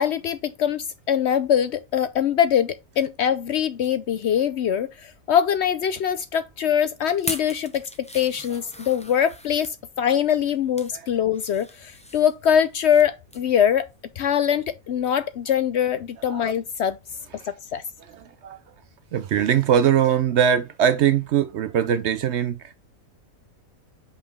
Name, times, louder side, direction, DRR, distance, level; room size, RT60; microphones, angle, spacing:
voice 1, 0.0-7.8 8.1-13.8 14.2-17.0 17.5-17.8, left 9 dB, 65° left, 0.7 m, -23 dB
sound 1, 7.1-9.8 10.4-10.9 11.3-13.0 13.3-13.5 13.9-14.0, left 1 dB, 10° left, 0.5 m, -38 dB
voice 2, 18.1-18.6 19.1-22.7, right 9 dB, 65° right, 0.7 m, -21 dB
5.8 x 5.1 x 3.5 m
omnidirectional pair, 1.5 m